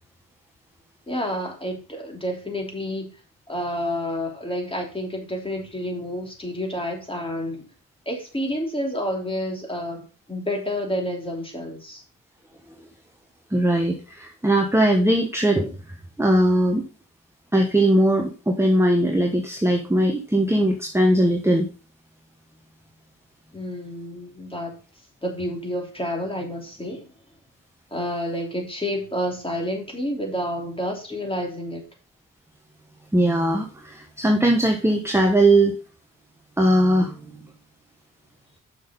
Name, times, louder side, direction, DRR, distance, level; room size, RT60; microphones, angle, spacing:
voice 1, 1.1-3.1 3.5-7.7 8.1-12.0 23.5-24.8 25.2-27.1 27.9-31.8, equal, 15° left, 1 dB, 3.0 m, -29 dB
voice 2, 13.5-15.7 16.2-16.8 17.5-21.7 33.1-35.7 36.6-37.5, right 1 dB, 10° right, 2 dB, 1.2 m, -20 dB
6.3 x 6.3 x 5.3 m, 0.35 s
cardioid pair, 80°, 33 cm